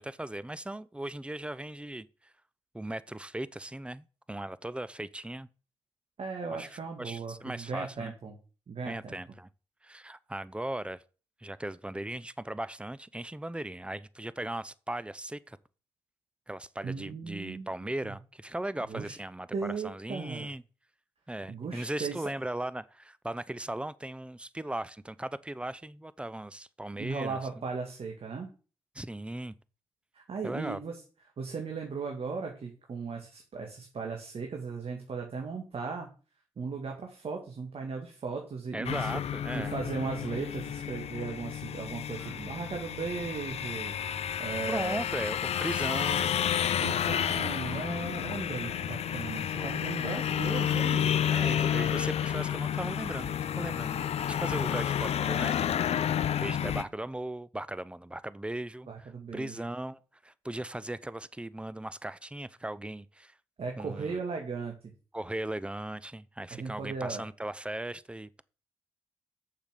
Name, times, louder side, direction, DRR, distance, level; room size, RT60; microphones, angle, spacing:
voice 1, 0.0-2.3 2.7-5.5 6.5-8.1 8.8-9.5 9.8-11.0 11.4-15.6 16.5-20.6 21.3-27.4 28.9-29.5 30.4-30.8 38.7-39.7 42.1-42.8 44.5-46.4 49.5-50.7 51.3-63.3 63.8-64.2 65.1-68.4, right 1 dB, 10° right, 0.7 m, -38 dB
voice 2, 6.2-8.4 8.7-9.2 16.8-17.7 18.0-18.1 18.9-19.2 19.5-20.5 21.5-22.2 27.0-28.5 30.1-31.0 31.4-36.1 36.6-39.1 39.5-45.0 46.8-51.2 58.9-59.6 63.6-64.7 66.5-67.2, right 5 dB, 60° right, 1.9 m, -37 dB
sound 1, 38.8-56.8, left 9 dB, 70° left, 0.6 m, -30 dB
7.0 x 5.7 x 6.7 m
supercardioid pair, 45°, 11 cm